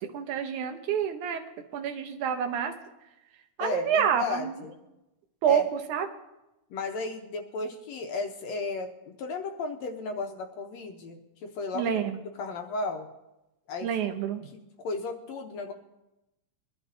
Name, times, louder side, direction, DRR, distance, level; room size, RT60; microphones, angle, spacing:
voice 1, 0.0-1.4 1.7-2.7 3.6-4.5 5.4-6.1 11.7-12.2 13.8-14.5, right 8 dB, 75° right, 5 dB, 2.4 m, -28 dB
voice 2, 3.6-4.5 5.4-5.6 6.7-11.9 12.4-13.1 13.7-13.9 14.8-15.7, left 3 dB, 70° left, 4 dB, 1.9 m, -34 dB
23.0 x 12.0 x 2.7 m, 0.96 s
omnidirectional pair, 3.6 m